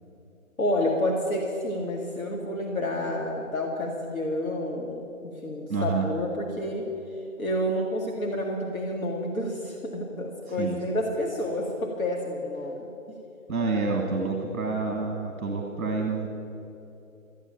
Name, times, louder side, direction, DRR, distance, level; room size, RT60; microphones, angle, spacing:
voice 1, 0.6-5.0 5.4-6.9 7.4-12.9, left 1 dB, 75° left, -1 dB, 2.1 m, -29 dB
voice 2, 5.7-6.1 10.5-10.8 13.5-16.3, right 4 dB, 5° right, -3 dB, 1.0 m, -28 dB
13.5 x 9.1 x 9.0 m, 2.8 s
hypercardioid pair, 175°, 42 cm